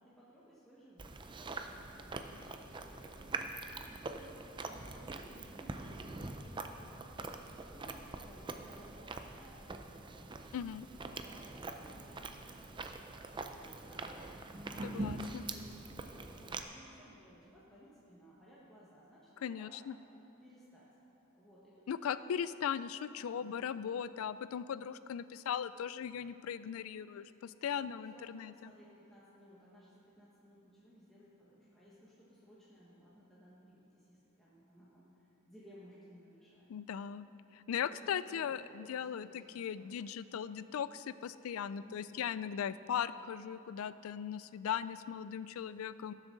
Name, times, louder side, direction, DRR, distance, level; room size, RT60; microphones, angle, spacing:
voice 1, 0.0-4.2 4.6-12.7 13.0-14.2 14.5-19.8 20.4-20.9 21.3-22.4 23.3-23.7 27.7-36.7 37.7-39.4 39.7-39.9 41.8-42.3, equal, ahead, -9 dB, 1.4 m, -59 dB
Chewing mastication, 1.0-16.6, right 2 dB, 20° right, 0.4 m, -44 dB
voice 2, 10.5-10.9 14.8-15.4 19.4-19.9 21.9-28.7 36.7-46.1, left 8 dB, 75° left, 15 dB, 0.3 m, -38 dB
18.5 x 7.3 x 3.9 m, 2.9 s
head